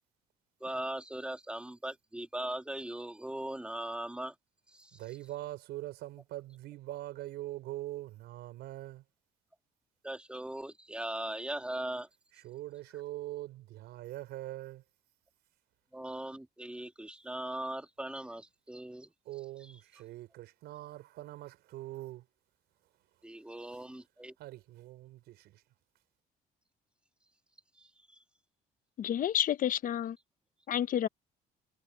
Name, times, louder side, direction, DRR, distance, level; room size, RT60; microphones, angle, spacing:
voice 1, 0.6-4.3 4.7-4.9 10.0-12.1 15.9-19.1 23.2-24.3 27.8-28.2, right 1 dB, 5° right, 2.4 m, -39 dB
voice 2, 4.9-9.0 12.3-14.8 19.3-22.3 23.7-23.8 24.4-25.6, right 16 dB, 80° right, 5.1 m, -43 dB
voice 3, 29.0-30.2 30.7-31.1, left 10 dB, 55° left, 1.0 m, -30 dB
cardioid pair, 110°, 17 cm